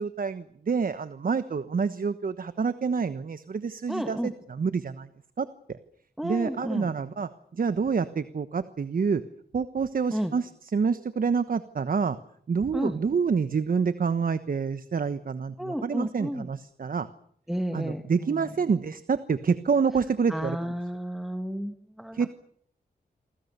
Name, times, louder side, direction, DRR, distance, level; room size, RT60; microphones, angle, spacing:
voice 1, 0.0-5.1 5.4-5.8 6.2-9.2 9.5-12.2 12.5-17.1 17.7-20.7 22.1-22.3, right 5 dB, 60° right, 12 dB, 1.2 m, -27 dB
voice 2, 3.9-4.3 6.2-6.9 10.1-10.3 12.7-13.0 15.6-16.5 17.5-18.5 20.3-22.3, equal, ahead, 6 dB, 2.0 m, -32 dB
28.0 x 24.5 x 6.8 m, 0.64 s
wide cardioid pair, 85°, 16 cm